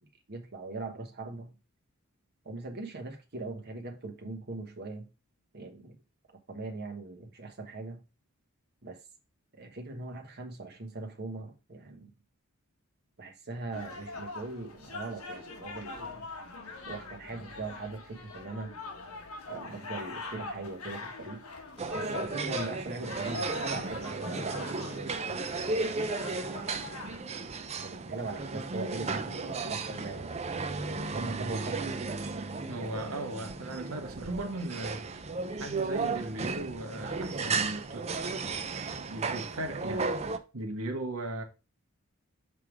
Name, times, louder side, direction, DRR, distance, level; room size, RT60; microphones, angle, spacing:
voice 1, 0.3-1.5 2.4-5.1 5.5-6.0 6.5-8.0 8.8-9.0 9.5-12.1 13.2-16.3 16.9-18.7 19.5-21.4 21.8-24.9 26.5-26.8 27.8-30.3 30.9-31.8, right 3 dB, 50° right, 1.2 m, -40 dB
sound 1, 13.7-27.2, left 3 dB, 85° left, 1.2 m, -42 dB
sound 2, 21.8-40.4, right 4 dB, 30° right, 0.5 m, -34 dB
voice 2, 32.7-35.0 35.6-38.2 38.9-40.0 40.5-41.4, right 1 dB, 90° right, 1.6 m, -37 dB
6.7 x 3.5 x 4.6 m
head